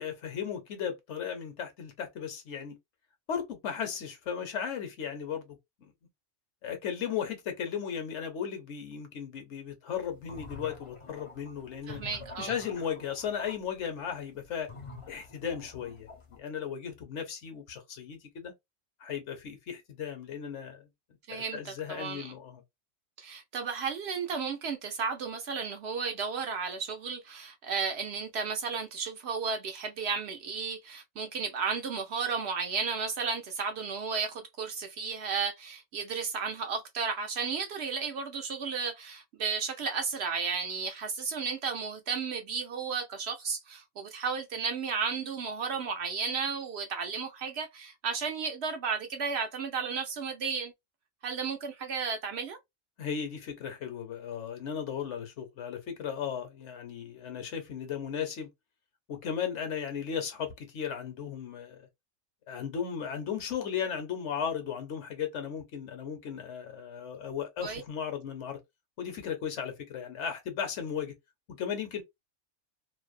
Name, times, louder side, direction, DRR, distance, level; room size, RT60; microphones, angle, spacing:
voice 1, 0.0-2.8 3.3-5.9 6.6-12.0 12.4-14.7 15.1-18.5 19.0-20.9 21.3-22.6 53.0-58.5 59.1-61.9 62.5-68.6 69.0-71.1 71.5-72.0, left 7 dB, 65° left, 1.0 m, -36 dB
sound 1, 10.1-13.6 14.7-16.4, left 3 dB, 35° left, 0.5 m, -47 dB
voice 2, 11.9-12.5 21.3-22.3 23.2-50.7 51.2-52.6 67.6-67.8, right 5 dB, 65° right, 0.7 m, -33 dB
2.6 x 2.0 x 2.4 m
omnidirectional pair, 1.3 m